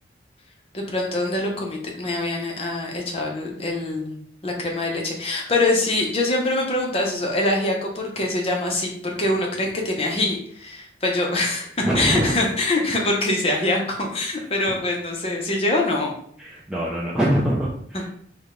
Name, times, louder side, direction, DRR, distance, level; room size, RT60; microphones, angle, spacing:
voice 1, 0.7-11.7 11.9-16.1, left 2 dB, 30° left, 0 dB, 0.7 m, -24 dB
voice 2, 11.8-12.3 14.4-14.8 16.4-18.1, right 1 dB, 5° right, -6 dB, 0.5 m, -24 dB
4.9 x 2.2 x 3.7 m, 0.63 s
head